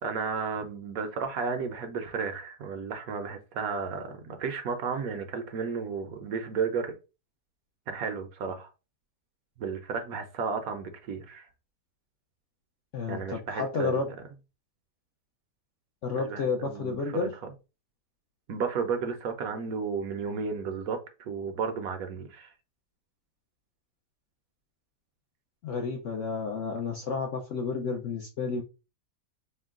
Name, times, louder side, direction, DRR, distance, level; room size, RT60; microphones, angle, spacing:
voice 1, 0.0-6.9 7.9-8.7 9.6-11.5 13.1-13.9 16.2-17.3 18.5-22.5, right 5 dB, 65° right, 1.0 m, -33 dB
voice 2, 12.9-14.1 16.0-17.3 25.6-28.6, left 4 dB, 65° left, 0.7 m, -31 dB
4.4 x 2.1 x 3.6 m
omnidirectional pair, 1.8 m